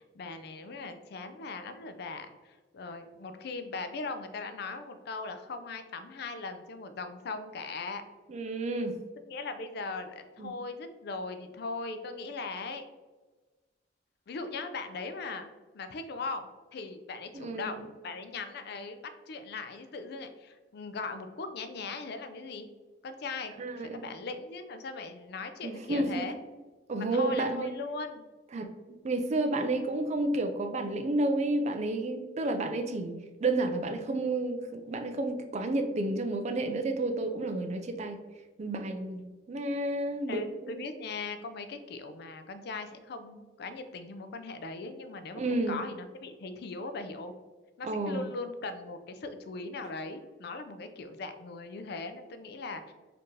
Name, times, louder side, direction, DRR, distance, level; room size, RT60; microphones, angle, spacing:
voice 1, 0.1-8.0 9.3-12.9 14.3-15.5 15.7-17.8 18.0-19.0 19.3-22.7 23.0-26.4 26.9-28.3 40.3-47.3 47.8-52.9, left 3 dB, 60° left, 9 dB, 0.4 m, -39 dB
voice 2, 8.3-9.0 10.4-10.5 17.3-17.7 23.6-24.0 25.6-26.3 26.9-27.7 28.5-28.7 29.0-33.1 33.4-38.2 38.6-40.9 45.4-45.8 47.8-48.3, right 2 dB, 40° right, 7 dB, 0.4 m, -31 dB
4.2 x 2.7 x 3.2 m, 1.3 s
head